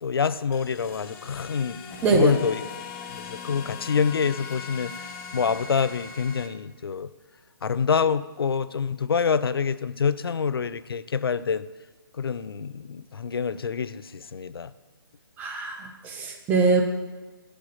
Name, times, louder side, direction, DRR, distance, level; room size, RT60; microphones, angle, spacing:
voice 1, 0.0-1.8 2.1-2.6 3.3-4.9 5.3-7.1 7.6-11.7 12.2-14.7, left 6 dB, 80° left, 16 dB, 0.4 m, -26 dB
sound 1, 0.5-6.5, left 6 dB, 20° left, 0.7 m, -40 dB
voice 2, 2.0-2.4 15.4-16.8, right 4 dB, 15° right, 3 dB, 0.8 m, -23 dB
7.2 x 5.1 x 7.1 m, 1.2 s
figure-of-eight pair, 145°, 12 cm